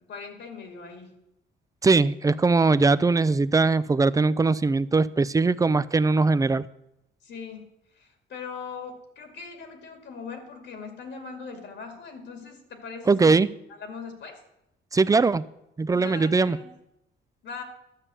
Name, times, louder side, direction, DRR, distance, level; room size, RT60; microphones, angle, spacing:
voice 1, 0.1-1.1 7.2-7.7 8.0-13.4 13.7-14.4 15.9-16.7 17.4-17.6, left 5 dB, 70° left, 4 dB, 2.2 m, -40 dB
voice 2, 1.8-6.7 13.1-13.5 14.9-15.4 15.8-16.6, right 3 dB, 15° right, 17 dB, 0.5 m, -21 dB
12.0 x 7.1 x 6.8 m, 0.86 s
cardioid pair, 90°, 20 cm